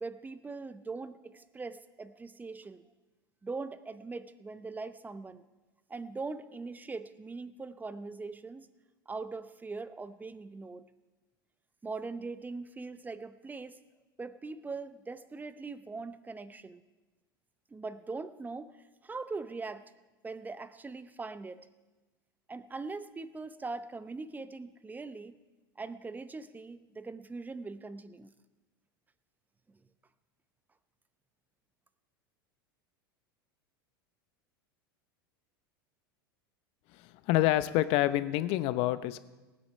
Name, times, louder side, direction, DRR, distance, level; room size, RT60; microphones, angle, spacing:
voice 1, 0.0-2.8 3.4-5.4 5.9-8.7 9.1-10.9 11.8-13.8 14.2-16.8 17.7-18.8 19.0-19.9 20.2-21.7 22.5-25.4 25.8-28.3, right 3 dB, 15° right, 13 dB, 0.7 m, -41 dB
voice 2, 36.9-39.2, left 15 dB, 55° left, 14 dB, 0.8 m, -27 dB
18.5 x 8.4 x 5.6 m, 1.2 s
hypercardioid pair, 90°, 12 cm